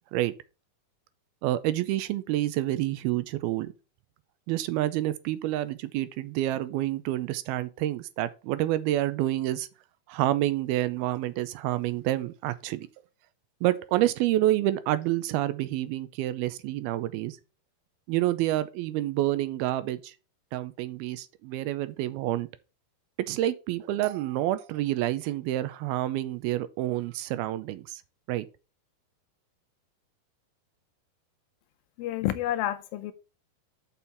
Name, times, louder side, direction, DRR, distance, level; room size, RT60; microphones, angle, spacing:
voice 1, 1.4-3.7 4.5-9.7 10.1-12.9 13.6-17.4 18.1-20.1 20.5-22.5 23.3-28.0 28.3-28.5, right 14 dB, 80° right, 2.5 m, -28 dB
voice 2, 32.0-33.1, left 13 dB, 80° left, 2.2 m, -29 dB
7.0 x 5.6 x 5.8 m
omnidirectional pair, 4.5 m